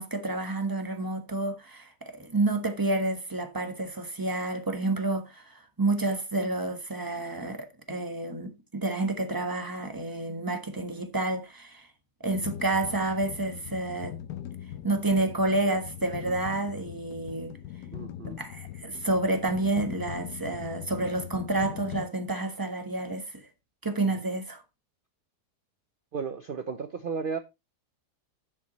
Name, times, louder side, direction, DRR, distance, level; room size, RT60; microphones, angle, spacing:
voice 1, 0.0-11.9 12.2-14.2 14.8-17.6 18.4-23.3 23.8-24.6, right 2 dB, 15° right, 1.1 m, -29 dB
sound 1, 12.3-22.0, left 11 dB, 80° left, 1.3 m, -41 dB
voice 2, 17.9-18.4 24.0-24.1 26.1-27.4, right 5 dB, 80° right, 0.4 m, -34 dB
10.5 x 6.9 x 3.1 m
omnidirectional pair, 1.7 m